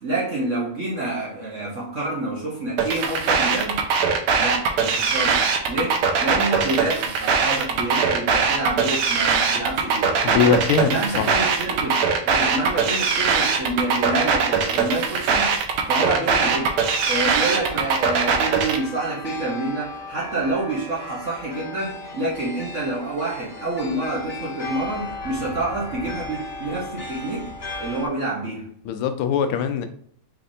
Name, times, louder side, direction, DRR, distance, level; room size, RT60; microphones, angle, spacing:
voice 1, 0.0-3.8 4.4-10.6 10.8-15.5 15.9-27.5 27.8-28.7, right 2 dB, 50° right, 1.0 m, -28 dB
sound 1, 2.8-18.8, right 5 dB, 85° right, 1.6 m, -21 dB
voice 2, 10.2-11.3 28.8-29.9, left 7 dB, 85° left, 1.5 m, -21 dB
sound 2, 16.3-28.1, left 2 dB, 30° left, 1.3 m, -36 dB
5.4 x 3.4 x 2.6 m
omnidirectional pair, 2.3 m